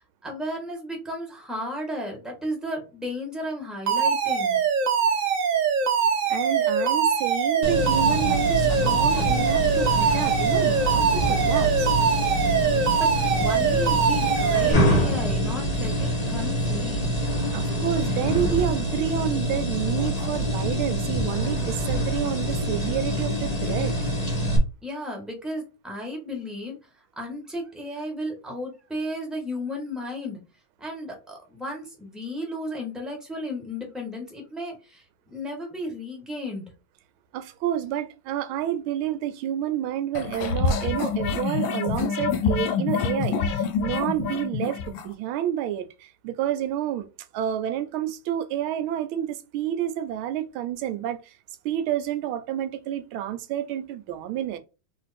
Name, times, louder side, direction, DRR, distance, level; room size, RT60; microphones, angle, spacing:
voice 1, 0.0-4.6 13.0-17.1 24.8-26.8 27.2-30.4 30.8-36.7, left 1 dB, ahead, 1.1 m, -34 dB
Alarm, 3.9-14.7, right 6 dB, 55° right, 0.9 m, -23 dB
voice 2, 6.3-11.9 17.5-23.9 37.3-47.1 47.3-51.4 51.6-54.6, right 11 dB, 80° right, 1.5 m, -29 dB
sound 1, 7.6-24.6, equal, 25° left, 1.0 m, -25 dB
sound 2, 40.1-45.1, left 5 dB, 75° left, 1.4 m, -26 dB
3.8 x 3.1 x 4.2 m
omnidirectional pair, 2.3 m